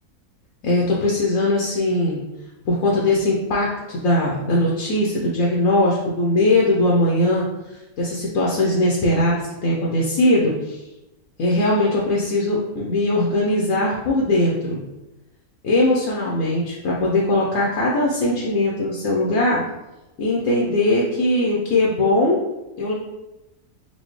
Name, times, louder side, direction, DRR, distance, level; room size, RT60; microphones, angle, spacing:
voice 1, 0.6-2.2 2.6-7.4 8.0-10.8 11.4-14.8 15.6-19.6 20.2-22.4 22.8-22.9, left 1 dB, 65° left, -3 dB, 1.0 m, -20 dB
4.2 x 2.7 x 3.1 m, 0.99 s
omnidirectional pair, 1.6 m